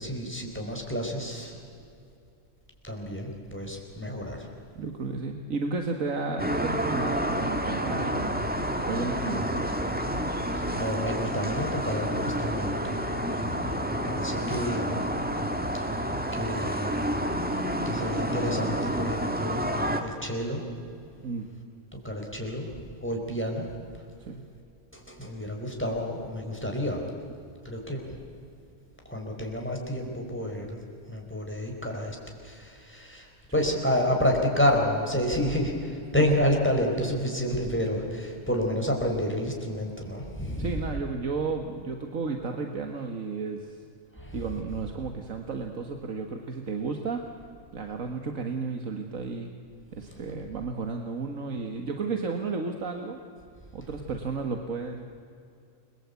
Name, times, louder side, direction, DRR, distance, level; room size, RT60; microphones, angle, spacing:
voice 1, 0.0-1.6 2.8-4.5 10.5-13.0 13.3-15.1 15.8-16.0 16.3-20.7 21.9-22.7 23.0-23.7 24.9-27.1 27.6-28.1 29.1-30.8 31.1-32.2 32.4-40.8 44.2-44.5, equal, 10° left, 1 dB, 4.7 m, -30 dB
voice 2, 4.8-8.4 8.8-9.7 13.6-13.7 21.2-21.5 23.3-23.4 24.2-24.4 33.6-33.7 36.2-36.3 40.6-43.8 44.3-47.2 47.7-49.5 49.9-53.2 53.7-55.0, right 4 dB, 80° right, 4 dB, 2.0 m, -33 dB
sound 1, 6.4-20.0, equal, 5° right, 1.7 m, -29 dB
29.0 x 22.5 x 8.3 m, 2.5 s
omnidirectional pair, 1.4 m